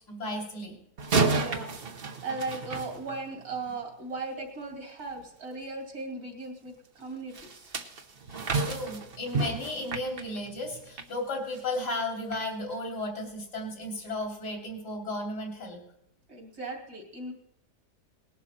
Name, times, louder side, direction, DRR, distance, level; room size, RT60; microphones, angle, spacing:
voice 1, 0.1-0.8 8.3-15.8, left 1 dB, 75° left, 1 dB, 3.6 m, -34 dB
sound 1, 1.0-3.6 7.3-11.1 11.5-11.8 12.3-12.4, right 4 dB, 40° right, 1.1 m, -31 dB
voice 2, 1.4-7.7 16.3-17.3, right 3 dB, 65° right, 1 dB, 3.2 m, -38 dB
19.0 x 11.5 x 4.3 m, 0.76 s
omnidirectional pair, 1.8 m